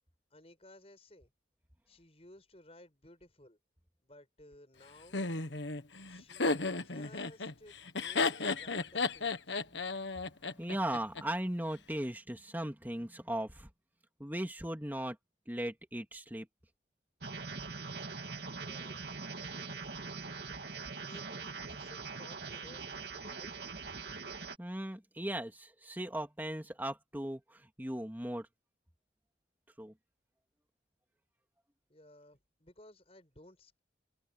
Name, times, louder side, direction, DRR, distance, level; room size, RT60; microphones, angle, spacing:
voice 1, 0.3-1.3 1.9-3.6 4.0-5.2 6.1-6.5 6.8-9.6 18.6-19.1 19.4-19.8 20.9-22.9 23.1-23.5 31.9-33.8, left 1 dB, 35° left, 7.9 m, -57 dB
Laughter, 5.1-11.2, left 3 dB, 80° left, 1.5 m, -34 dB
voice 2, 10.6-13.7 14.2-15.2 15.5-16.5 24.6-27.4 27.8-28.5 29.8-29.9, right 1 dB, 10° right, 2.5 m, -37 dB
sound 1, 17.2-24.6, right 4 dB, 60° right, 2.3 m, -42 dB
head